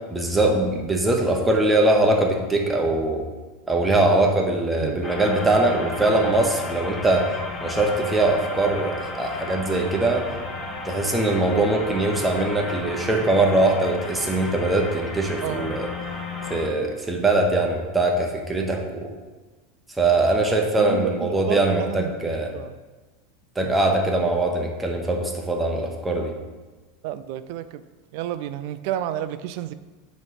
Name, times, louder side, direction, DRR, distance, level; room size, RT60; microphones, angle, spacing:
voice 1, 0.1-3.2 3.7-7.3 7.6-10.3 10.8-15.9 16.5-19.1 20.0-22.5 23.6-26.3, right 2 dB, 10° right, 1 dB, 0.8 m, -22 dB
sound 1, 5.0-16.6, left 3 dB, 25° left, 1.5 m, -33 dB
voice 2, 15.4-15.8 20.7-22.8 23.6-23.8 27.0-27.8 28.1-29.7, right 11 dB, 55° right, 13 dB, 0.4 m, -31 dB
7.9 x 3.1 x 5.6 m, 1.2 s
supercardioid pair, 155°, 0 cm